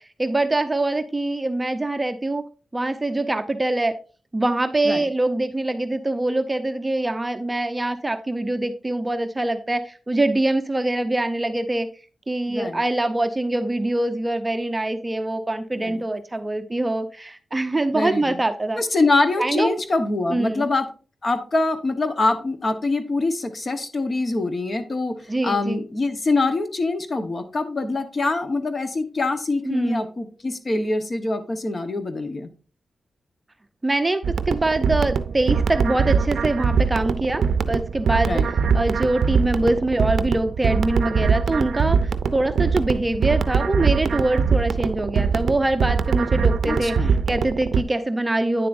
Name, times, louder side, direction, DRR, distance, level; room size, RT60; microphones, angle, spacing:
voice 1, 0.0-2.4 2.7-3.9 4.3-11.9 12.3-18.8 19.4-19.7 20.3-20.6 25.3-25.8 29.6-30.0 33.8-38.4 38.7-48.7, right 2 dB, 15° right, 8 dB, 0.6 m, -24 dB
voice 2, 12.5-12.8 15.8-16.0 17.9-18.4 18.8-20.9 21.2-25.2 25.4-32.5 38.2-38.5 46.6-47.1, left 2 dB, 40° left, 8 dB, 1.0 m, -24 dB
sound 1, 34.2-47.8, right 6 dB, 90° right, 0.4 m, -22 dB
9.4 x 7.4 x 2.5 m, 0.36 s
wide cardioid pair, 130°, 0 cm